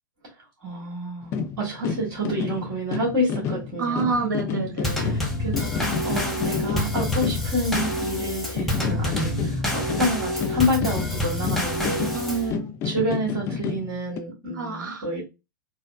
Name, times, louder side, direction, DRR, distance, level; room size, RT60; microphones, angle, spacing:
voice 1, 0.6-4.3 4.8-12.1 12.8-15.2, equal, 35° right, 1.9 m, -28 dB
sound 1, 1.2-8.3 8.6-14.2, left 6 dB, 25° left, 0.3 m, -30 dB
voice 2, 3.8-5.0 12.1-12.7 14.5-15.1, right 4 dB, 60° right, 1.0 m, -28 dB
Drum kit / Snare drum / Bass drum, 4.8-12.5, left 1 dB, ahead, 0.8 m, -27 dB
4.0 x 2.1 x 2.3 m
figure-of-eight pair, 105°, 11 cm